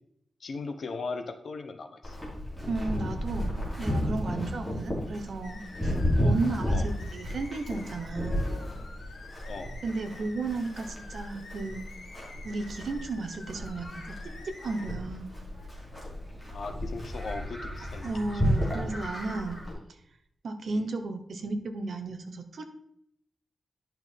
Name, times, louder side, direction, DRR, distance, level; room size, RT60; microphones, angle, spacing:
voice 1, 0.4-2.2 6.1-6.4 6.7-6.9 9.5-9.8 16.5-18.3 20.7-20.9, left 4 dB, 60° left, 7 dB, 0.9 m, -38 dB
Livestock farm animals working animals, 2.0-19.7, equal, 5° left, 3.0 m, -33 dB
voice 2, 2.7-8.4 9.8-11.9 12.4-14.1 14.4-15.3 18.0-19.6 20.4-22.6, right 3 dB, 65° right, 7 dB, 1.0 m, -34 dB
sound 1, 5.4-14.9, left 3 dB, 85° left, 1.7 m, -49 dB
10.5 x 5.9 x 3.6 m, 0.73 s
wide cardioid pair, 155°, 0 cm